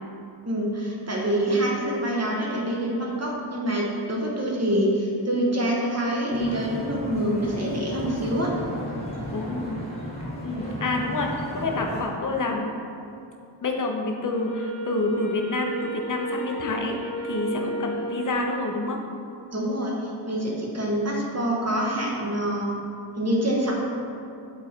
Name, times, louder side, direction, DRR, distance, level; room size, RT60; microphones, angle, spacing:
voice 1, 0.4-8.5 19.5-22.7 23.2-23.7, right 1 dB, 35° right, -3 dB, 1.2 m, -26 dB
sound 1, 6.3-12.0, equal, 15° left, 1.3 m, -34 dB
voice 2, 9.3-9.8 10.4-12.7 13.6-17.0 17.2-19.0, left 2 dB, 45° left, 2 dB, 0.8 m, -28 dB
Wind instrument woodwind instrument, 14.3-18.9, right 2 dB, 70° left, 1.3 m, -33 dB
7.1 x 4.0 x 4.4 m, 2.6 s
wide cardioid pair, 140°, 44 cm